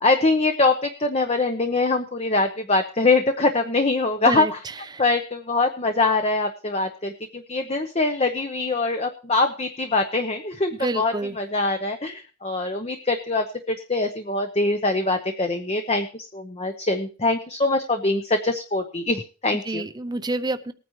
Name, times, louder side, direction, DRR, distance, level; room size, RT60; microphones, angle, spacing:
voice 1, 0.0-4.6 5.0-19.8, left 3 dB, 35° left, 6 dB, 0.8 m, -23 dB
voice 2, 10.8-11.3 19.7-20.7, right 2 dB, 20° right, 10 dB, 0.6 m, -27 dB
20.0 x 9.3 x 3.1 m, 0.35 s
head